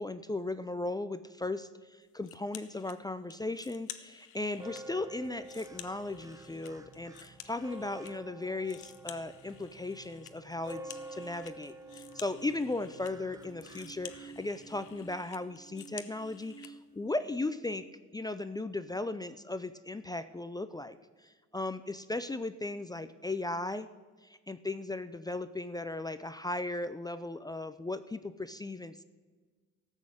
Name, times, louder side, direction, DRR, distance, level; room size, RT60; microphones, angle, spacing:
voice 1, 0.0-17.8 18.1-21.0 21.2-23.9 24.2-29.0, left 2 dB, 15° left, 12 dB, 0.5 m, -37 dB
sound 1, 2.2-3.0 3.3-4.8 5.2-8.1 8.4-16.7, left 12 dB, 90° left, 0.8 m, -51 dB
sound 2, 4.5-15.0, right 1 dB, 10° right, 0.9 m, -50 dB
sound 3, 10.6-12.9 13.3-17.9, right 4 dB, 65° right, 1.7 m, -54 dB
13.5 x 6.4 x 7.8 m, 1.4 s
cardioid pair, 90°, 30 cm